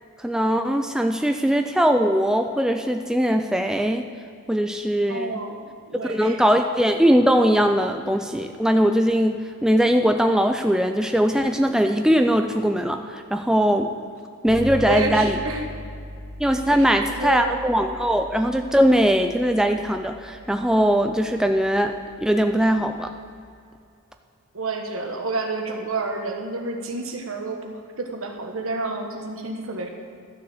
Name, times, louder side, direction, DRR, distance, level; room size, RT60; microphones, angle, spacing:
voice 1, 0.2-4.1 4.5-5.4 6.1-13.9 14.4-15.4 16.4-21.9 22.2-23.1, equal, 5° right, 5 dB, 0.4 m, -20 dB
voice 2, 5.1-5.6 5.9-6.4 14.9-15.7 16.7-17.5 24.5-29.9, right 2 dB, 65° right, 3 dB, 1.5 m, -29 dB
sound 1, 14.5-23.4, equal, 25° right, 3.3 m, -39 dB
12.5 x 6.7 x 7.7 m, 2.4 s
head